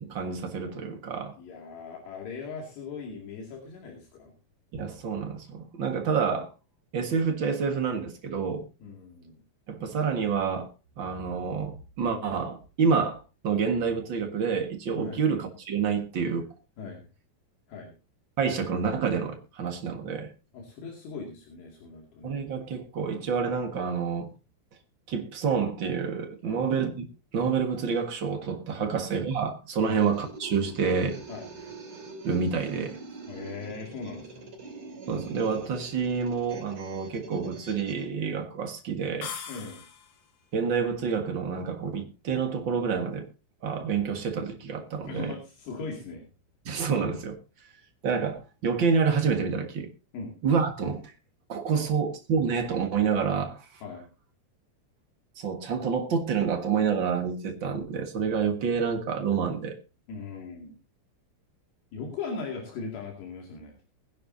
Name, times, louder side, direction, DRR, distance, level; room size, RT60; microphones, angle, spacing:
voice 1, 0.0-1.3 4.8-6.5 6.9-8.6 9.7-10.7 11.0-16.5 18.4-20.3 22.2-24.3 25.1-27.1 27.3-31.2 32.2-33.0 35.1-39.3 40.5-43.3 43.6-45.3 46.6-47.4 48.0-49.9 50.4-51.1 51.5-53.8 55.4-59.7, right 6 dB, 65° right, 1.1 m, -28 dB
voice 2, 1.4-4.3 8.8-9.4 15.0-15.2 16.8-17.1 17.7-17.9 20.5-22.4 26.4-26.6 28.8-29.0 29.8-30.0 31.3-31.5 33.3-34.4 39.5-39.8 45.0-46.3 50.1-50.3 51.7-52.0 53.8-54.1 60.1-60.8 61.9-63.8, left 4 dB, 70° left, 4.5 m, -39 dB
sound 1, 29.8-38.0, right 3 dB, 35° right, 3.3 m, -44 dB
sound 2, 39.2-40.3, left 7 dB, 55° left, 2.1 m, -39 dB
22.5 x 10.5 x 2.7 m
omnidirectional pair, 5.0 m